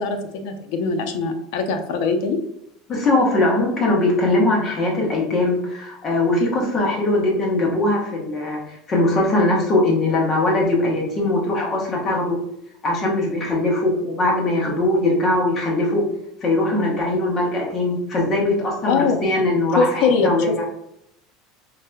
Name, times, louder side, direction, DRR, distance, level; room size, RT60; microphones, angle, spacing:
voice 1, 0.0-2.4 18.9-19.2 19.8-20.7, left 4 dB, 60° left, 6 dB, 0.5 m, -22 dB
voice 2, 2.9-8.6 8.9-12.4 12.8-16.0 16.4-20.6, left 2 dB, 25° left, -2 dB, 1.0 m, -20 dB
4.7 x 2.7 x 2.3 m, 0.79 s
cardioid pair, 180°, 0 cm